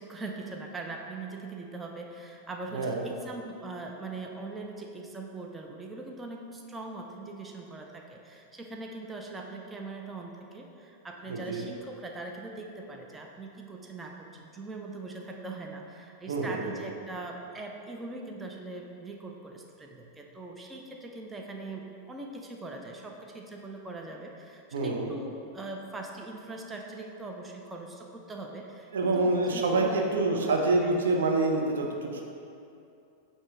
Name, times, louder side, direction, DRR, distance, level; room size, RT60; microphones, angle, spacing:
voice 1, 0.0-30.5 30.8-31.0, right 2 dB, 15° right, 1 dB, 0.5 m, -41 dB
voice 2, 2.7-3.1 11.3-11.7 16.3-16.7 24.7-25.1 28.9-32.2, right 2 dB, 65° right, 1 dB, 0.7 m, -27 dB
8.4 x 2.8 x 4.7 m, 2.6 s
figure-of-eight pair, 90°, 0 cm